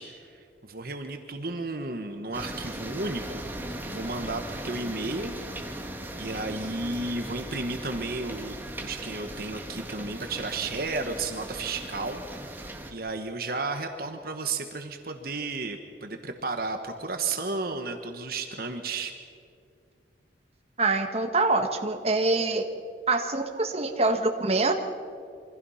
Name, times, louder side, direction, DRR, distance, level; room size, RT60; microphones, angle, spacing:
voice 1, 0.0-3.6 3.9-5.3 6.2-12.6 12.9-19.1, right 3 dB, 55° right, 6 dB, 1.4 m, -33 dB
sound 1, 2.3-12.9, right 1 dB, 10° right, 1.8 m, -38 dB
voice 2, 20.8-22.6 23.1-24.7, right 3 dB, 35° right, 4 dB, 1.6 m, -25 dB
27.0 x 24.5 x 5.8 m, 2.4 s
head